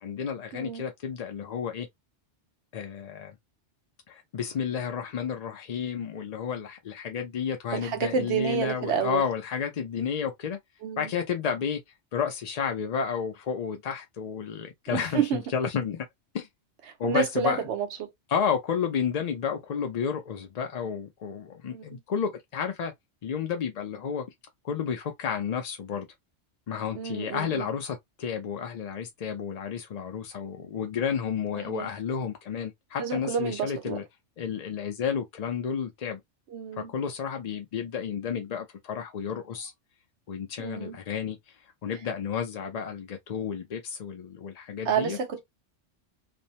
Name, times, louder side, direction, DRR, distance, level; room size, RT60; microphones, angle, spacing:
voice 1, 0.0-1.9 2.7-3.3 4.1-10.6 11.0-11.8 12.1-16.1 16.3-16.5 17.0-17.7 18.3-22.9 23.2-24.2 24.6-26.1 26.7-34.0 34.4-36.2 36.7-39.7 40.3-41.4 41.8-45.2, left 7 dB, 60° left, 0.4 m, -31 dB
voice 2, 0.5-0.8 7.7-9.2 10.8-11.1 14.9-15.4 17.0-18.1 21.7-22.0 26.9-27.7 31.5-31.9 33.0-34.0 36.5-36.9 40.6-41.0 44.8-45.4, right 7 dB, 75° right, 0.9 m, -30 dB
2.6 x 2.1 x 2.7 m
omnidirectional pair, 1.2 m